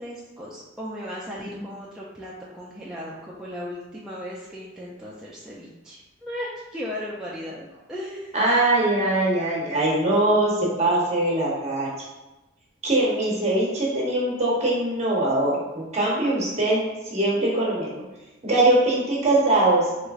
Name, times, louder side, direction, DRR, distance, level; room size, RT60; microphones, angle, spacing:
voice 1, 0.0-8.3, equal, 5° right, -7 dB, 0.3 m, -36 dB
voice 2, 8.3-11.9 12.8-16.8 17.1-18.0 18.4-19.8, right 2 dB, 35° right, -5 dB, 0.9 m, -22 dB
3.3 x 3.1 x 2.4 m, 1.1 s
head